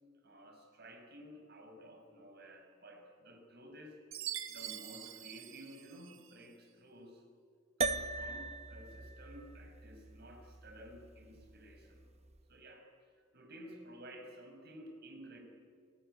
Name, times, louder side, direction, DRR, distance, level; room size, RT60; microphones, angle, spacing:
voice 1, 0.2-4.0 4.5-7.2 7.8-12.1 12.5-12.9 13.3-15.4, equal, 50° right, 3 dB, 5.9 m, -53 dB
Chime, 4.1-6.4, right 11 dB, 70° right, 1.6 m, -44 dB
sound 1, 7.8-12.4, right 3 dB, 30° right, 0.8 m, -41 dB
29.5 x 18.5 x 9.1 m, 2.2 s
head